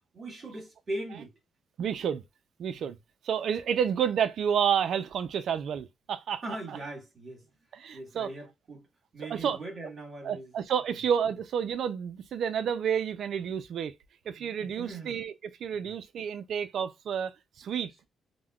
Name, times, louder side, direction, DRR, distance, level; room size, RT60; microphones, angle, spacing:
voice 1, 0.1-1.3 6.4-7.5 7.9-8.8 9.1-10.5 14.4-15.2 15.7-15.9, right 1 dB, 40° right, 1.3 m, -40 dB
voice 2, 1.8-2.2 2.6-3.0 3.2-6.8 7.7-8.3 9.3-9.6 10.2-13.9 14.3-17.3 17.6-17.9, right 8 dB, 65° right, 0.4 m, -30 dB
3.5 x 2.1 x 2.2 m
cardioid pair, 130°, 0 cm